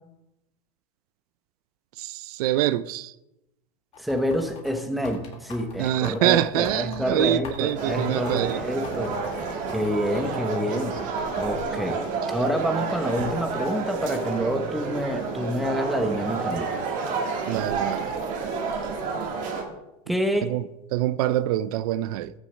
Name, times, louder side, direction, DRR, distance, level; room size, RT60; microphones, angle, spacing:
voice 1, 2.0-3.1 5.8-8.6 17.5-18.2 20.4-20.6 20.9-22.3, right 14 dB, 75° right, 0.4 m, -25 dB
sound 1, 3.9-10.5 11.0-11.6, left 5 dB, 30° left, 1.9 m, -42 dB
voice 2, 4.0-9.2 9.7-11.0 11.4-12.0 12.3-16.7 20.1-20.5, equal, ahead, 0.8 m, -27 dB
sound 2, 7.7-19.6, right 4 dB, 40° right, 1.8 m, -30 dB
14.0 x 6.3 x 3.3 m
supercardioid pair, 145°, 19 cm